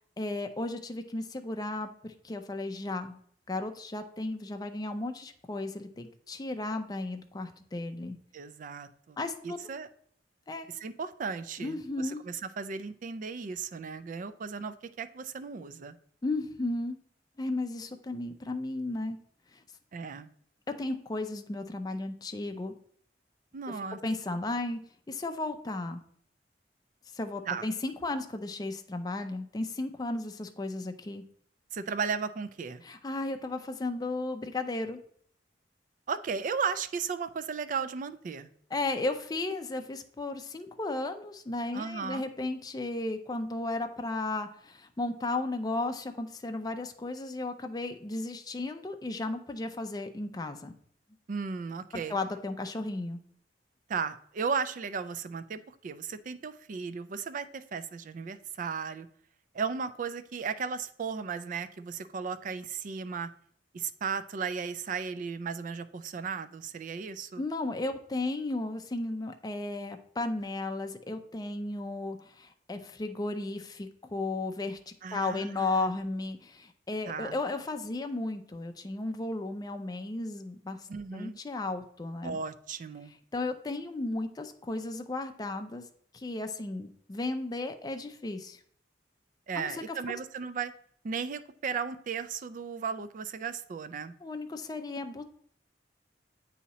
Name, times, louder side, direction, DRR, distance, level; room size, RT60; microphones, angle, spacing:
voice 1, 0.2-3.2 3.5-8.2 9.2-9.6 10.5-10.7 11.6-12.2 16.2-17.0 17.4-19.2 19.5-19.6 20.7-22.7 24.0-24.8 25.1-26.0 27.1-31.2 32.8-35.0 38.7-50.7 52.1-53.2 67.4-82.4 83.3-85.9 86.1-88.6 89.6-90.0 94.2-95.2, left 2 dB, 20° left, 6 dB, 0.4 m, -34 dB
voice 2, 8.3-9.2 9.4-9.9 10.7-16.0 19.9-20.3 23.5-24.0 27.5-27.6 31.7-32.8 36.1-38.5 41.7-42.3 51.3-52.1 53.9-59.1 59.5-63.3 63.7-67.4 75.0-75.9 77.1-77.4 80.9-81.4 82.2-83.1 89.5-90.7 91.0-94.1, right 5 dB, 45° right, 12 dB, 0.4 m, -35 dB
8.3 x 2.8 x 4.0 m, 0.62 s
head